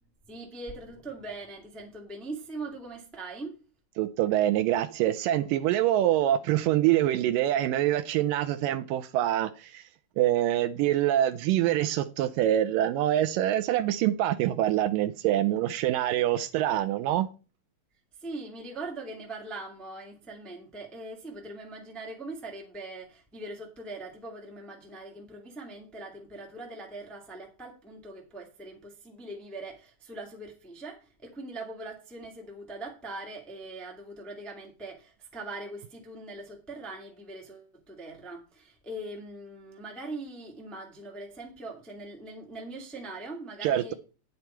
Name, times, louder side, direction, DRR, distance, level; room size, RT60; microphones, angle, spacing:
voice 1, 0.3-3.6 18.2-43.9, right 2 dB, ahead, 1.0 m, -41 dB
voice 2, 4.0-9.8 10.2-17.3 43.6-43.9, right 12 dB, 80° right, 2.1 m, -25 dB
9.7 x 8.1 x 4.4 m
omnidirectional pair, 4.1 m